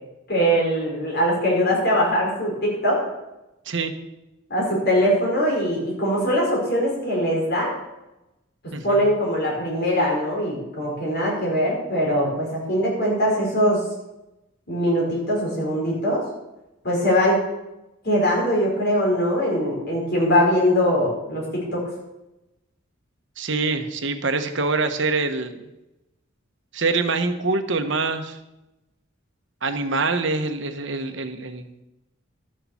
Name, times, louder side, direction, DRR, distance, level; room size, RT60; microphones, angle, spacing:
voice 1, 0.3-3.0 4.5-7.7 8.8-13.8 14.7-16.2 16.8-17.4 18.0-21.8, equal, 50° left, -3 dB, 5.0 m, -22 dB
voice 2, 8.7-9.0 23.4-25.7 26.7-28.4 29.6-31.8, right 3 dB, 65° right, 7 dB, 1.2 m, -25 dB
12.5 x 6.7 x 7.2 m, 0.96 s
head